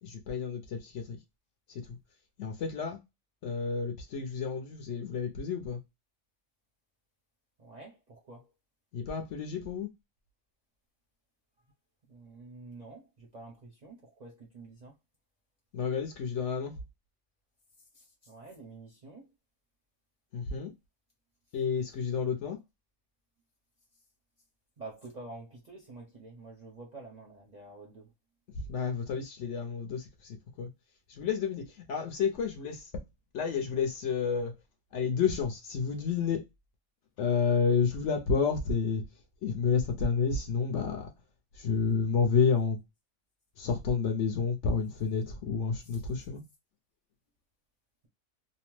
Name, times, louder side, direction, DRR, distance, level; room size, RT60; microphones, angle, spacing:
voice 1, 0.0-1.2 1.7-1.8 2.4-3.0 3.4-5.8 8.9-9.9 15.7-16.8 20.3-20.7 21.5-22.6 28.7-30.7 31.1-31.6 31.9-32.8 33.3-34.5 34.9-36.4 37.2-39.0 39.4-41.1 41.6-42.8 43.6-46.4, left 5 dB, 65° left, 0.8 m, -30 dB
voice 2, 7.6-8.5 12.1-15.0 17.9-19.3 24.8-28.1 45.8-46.0, right 3 dB, 45° right, 0.5 m, -48 dB
2.8 x 2.0 x 3.0 m
omnidirectional pair, 1.5 m